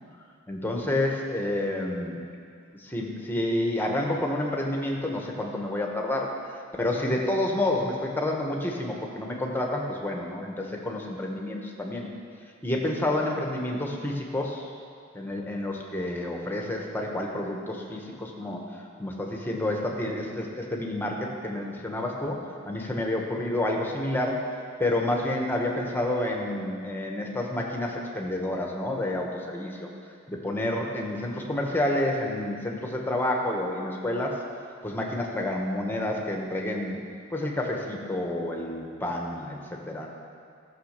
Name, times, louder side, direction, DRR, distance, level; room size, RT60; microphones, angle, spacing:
voice 1, 0.5-2.2 2.7-6.4 6.8-12.1 12.6-14.7 15.1-18.6 19.0-22.4 22.6-24.4 24.8-29.9 30.3-34.4 34.8-37.0 37.3-40.1, left 1 dB, 10° left, 0 dB, 1.3 m, -29 dB
14.0 x 6.4 x 6.6 m, 2.2 s
head